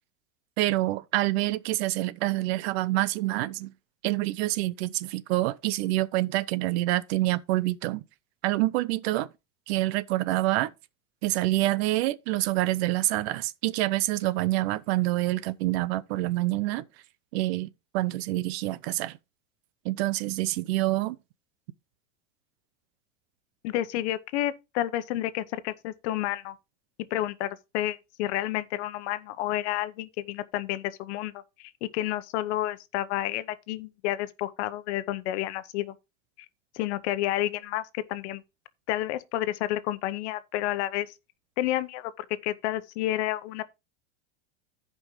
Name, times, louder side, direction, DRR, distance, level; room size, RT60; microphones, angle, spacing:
voice 1, 0.6-3.7 4.0-8.0 8.4-9.3 9.7-10.7 11.2-16.8 17.3-19.2 19.8-21.2, right 17 dB, 60° right, 0.7 m, -27 dB
voice 2, 23.6-26.5 27.1-35.9 36.7-38.4 38.9-41.1 41.6-43.6, left 14 dB, 65° left, 1.0 m, -30 dB
15.0 x 5.2 x 3.1 m
supercardioid pair, 150°, 37 cm